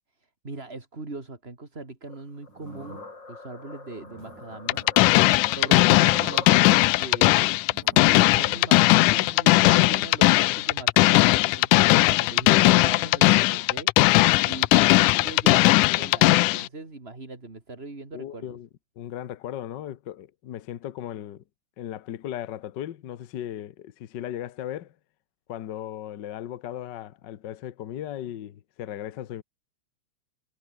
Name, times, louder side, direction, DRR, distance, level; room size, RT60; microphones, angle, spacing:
voice 1, 0.2-3.0 3.3-4.8 5.5-7.5 8.1-18.6, right 3 dB, 20° right, 3.1 m, -41 dB
sound 1, 2.1-7.1, left 3 dB, 35° left, 5.1 m, -42 dB
sound 2, 2.5-3.4 3.9-7.1 7.6-8.9 9.2-11.1 11.7-13.8, right 4 dB, 65° right, 7.8 m, -49 dB
sound 3, 4.7-16.7, left 20 dB, 90° left, 2.1 m, -19 dB
voice 2, 18.1-18.7 19.0-21.4 21.8-24.9 25.5-29.4, left 11 dB, 70° left, 1.0 m, -36 dB
omnidirectional pair, 3.6 m